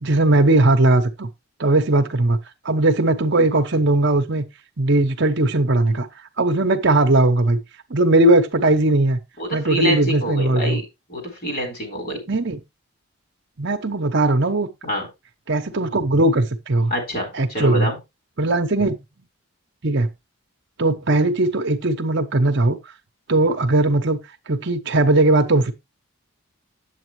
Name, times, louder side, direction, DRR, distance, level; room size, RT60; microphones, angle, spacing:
voice 1, 0.0-1.3 1.6-2.4 2.6-4.4 4.8-6.1 6.4-7.6 7.9-9.2 9.5-10.8 12.3-12.6 13.6-14.7 15.5-16.9 17.3-17.9 18.4-19.0 19.8-20.1 20.8-22.8 23.3-24.2 24.5-25.7, right 2 dB, 55° right, 0.8 m, -18 dB
voice 2, 9.4-10.8 11.1-12.2 14.8-15.1 16.9-18.0, right 1 dB, 45° left, 4.4 m, -26 dB
8.6 x 7.9 x 3.1 m
head